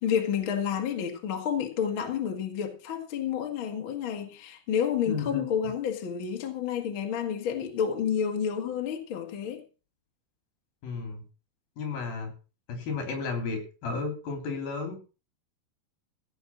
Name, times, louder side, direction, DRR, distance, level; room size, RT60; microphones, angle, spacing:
voice 1, 0.0-9.6, left 8 dB, 45° left, 1.8 m, -30 dB
voice 2, 5.1-5.4 10.8-11.2 11.8-12.3 12.7-15.0, left 4 dB, 65° left, 5.1 m, -33 dB
16.0 x 7.0 x 6.1 m
omnidirectional pair, 4.6 m